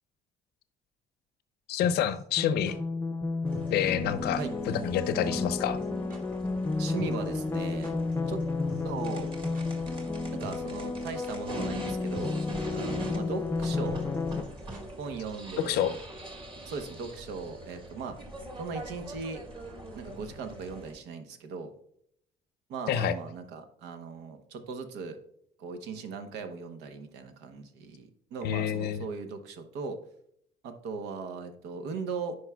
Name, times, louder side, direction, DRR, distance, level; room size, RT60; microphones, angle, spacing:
voice 1, 1.7-2.8 3.7-5.8 15.6-15.9 22.9-23.1 28.4-29.0, left 9 dB, 70° left, 13 dB, 0.6 m, -28 dB
sound 1, 1.8-2.8 3.5-3.8 4.1-4.2 4.4-4.7 5.0-5.1 5.2-5.6 5.8-5.9 6.1-6.2 7.0-8.1 8.4-8.5 8.7-9.3 9.5-9.7 10.4-10.7 11.0-11.6 11.8-11.9 12.1-12.5 12.7-12.8 13.0-13.1 13.9-15.0 15.3-15.4, right 1 dB, 50° right, 2.7 m, -45 dB
sound 2, 2.4-14.4, left 3 dB, 15° left, 0.5 m, -32 dB
sound 3, 3.4-20.9, right 1 dB, 30° right, 1.7 m, -43 dB
voice 2, 6.8-7.9 8.3-8.4 8.8-9.3 10.3-12.4 12.7-14.0 15.0-16.0 16.7-18.2 18.6-19.4 19.9-21.7 22.7-25.2 25.6-30.0 30.6-32.4, right 5 dB, 85° right, 7 dB, 1.0 m, -38 dB
10.5 x 4.8 x 2.3 m, 0.69 s
cardioid pair, 110°, 17 cm